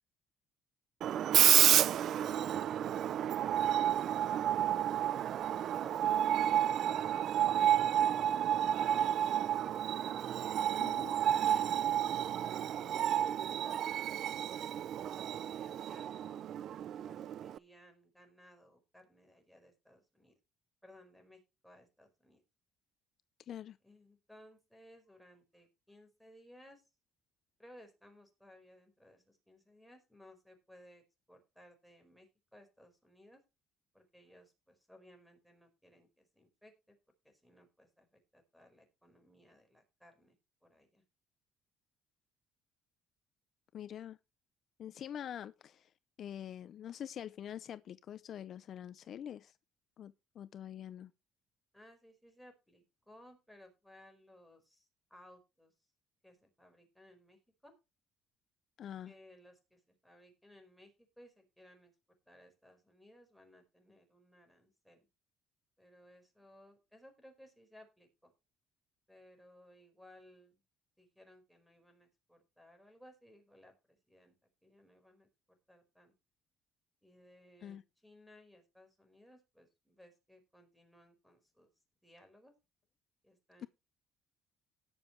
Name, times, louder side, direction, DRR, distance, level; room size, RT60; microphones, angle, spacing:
Screech, 1.0-17.6, right 10 dB, 60° right, 0.5 m, -30 dB
voice 1, 1.2-5.2 5.5-6.9 7.5-10.1 10.8-14.1 14.5-16.7 17.0-20.3 20.8-22.4 23.8-26.8 27.6-33.4 33.9-37.0 37.2-40.4 40.6-41.0 51.7-55.7 56.2-57.7 59.0-61.9 62.3-65.1 65.8-68.3 69.1-70.6 71.0-74.3 74.6-75.3 75.7-76.1 77.0-81.7 82.0-82.5 83.2-83.7, left 1 dB, ahead, 4.6 m, -60 dB
voice 2, 10.8-11.1 23.5-23.8 43.7-44.2 44.8-45.9 46.2-49.6 50.0-51.1 58.8-59.1 77.6-77.8 83.6-83.7, left 10 dB, 55° left, 0.5 m, -45 dB
18.5 x 7.1 x 3.2 m
cardioid pair, 105°, 0 cm